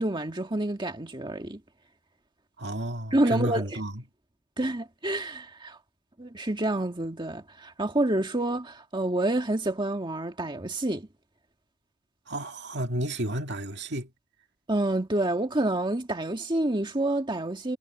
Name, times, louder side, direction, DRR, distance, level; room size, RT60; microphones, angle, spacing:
voice 1, 0.0-1.6 3.1-3.8 4.6-5.8 6.2-11.1 14.7-17.8, right 1 dB, 20° right, 1.8 m, -28 dB
voice 2, 2.6-4.0 12.3-14.1, right 1 dB, 55° right, 2.3 m, -31 dB
head